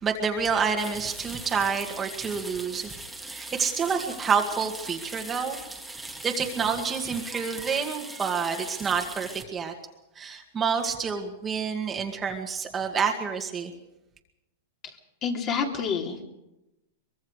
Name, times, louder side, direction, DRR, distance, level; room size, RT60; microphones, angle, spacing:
voice 1, 0.0-2.9 3.2-5.6 6.2-9.7 10.2-13.7, right 6 dB, 15° right, 2 dB, 2.0 m, -28 dB
sound 1, 0.8-9.4, right 2 dB, ahead, 1.9 m, -40 dB
voice 2, 15.2-16.2, left 6 dB, 30° left, 2 dB, 3.4 m, -28 dB
23.5 x 22.5 x 4.9 m, 0.93 s
supercardioid pair, 150°, 0 cm